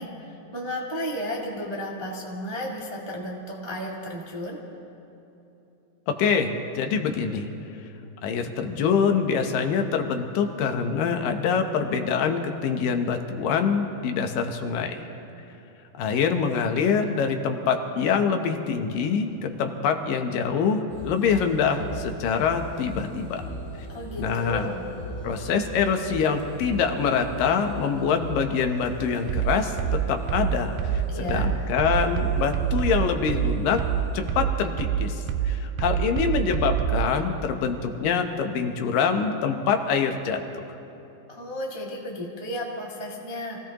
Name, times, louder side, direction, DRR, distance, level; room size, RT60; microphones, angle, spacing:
voice 1, 0.0-4.6 23.9-24.8 31.1-31.5 41.3-43.7, equal, 50° right, -4 dB, 0.3 m, -33 dB
voice 2, 6.2-7.5 8.2-15.0 16.0-23.4 24.2-24.7 25.2-29.7 30.1-33.8 34.1-40.6, left 6 dB, 75° left, 5 dB, 2.5 m, -25 dB
sound 1, 20.9-34.3, equal, 55° left, 4.8 m, -38 dB
sound 2, 29.3-37.1, right 10 dB, 80° right, 2.1 m, -26 dB
27.0 x 16.5 x 3.0 m, 3.0 s
omnidirectional pair, 4.1 m